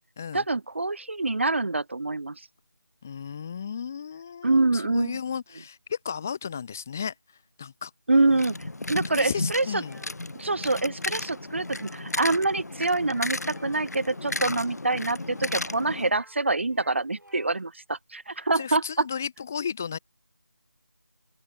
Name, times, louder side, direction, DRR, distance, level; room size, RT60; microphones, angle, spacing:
voice 1, 0.3-2.4 4.4-5.2 8.1-8.6 8.9-9.8 10.4-19.1, right 2 dB, 40° right, 0.8 m, -25 dB
voice 2, 3.0-7.1 7.6-7.9 9.1-10.0 18.5-20.0, left 7 dB, 10° left, 0.6 m, -34 dB
sound 1, 8.3-16.1, left 2 dB, 60° left, 1.0 m, -34 dB
sound 2, 9.8-10.1 10.5-10.9 11.6-12.0 12.3-12.7 13.0-14.5 15.3-16.4 16.6-17.6, right 1 dB, 85° right, 7.9 m, -54 dB
open air
figure-of-eight pair, 170°, 10 cm